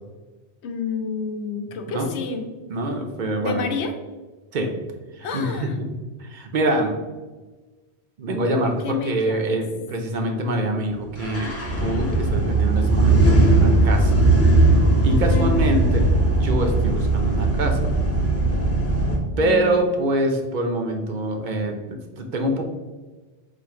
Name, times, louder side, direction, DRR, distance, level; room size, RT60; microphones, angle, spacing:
voice 1, 0.6-2.4 3.4-3.9 5.2-5.7 8.6-9.4 15.3-15.8 19.3-19.8, left 4 dB, 70° left, 6 dB, 0.9 m, -30 dB
voice 2, 2.7-3.6 4.5-4.7 5.2-5.9 6.2-6.9 8.2-11.5 11.8-14.1 15.0-16.0 16.3-17.9 19.4-22.6, right 1 dB, 50° right, 3 dB, 0.7 m, -25 dB
sound 1, 11.2-19.2, right 2 dB, 15° left, 0.7 m, -18 dB
4.2 x 2.5 x 4.8 m, 1.2 s
omnidirectional pair, 1.2 m